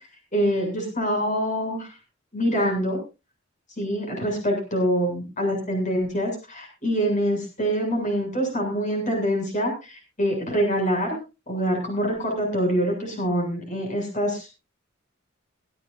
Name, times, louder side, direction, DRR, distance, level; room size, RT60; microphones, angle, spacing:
voice 1, 0.3-1.9 2.3-3.0 3.8-11.2 11.5-14.5, equal, 40° left, 1 dB, 7.6 m, -25 dB
24.0 x 12.0 x 2.7 m, 0.30 s
head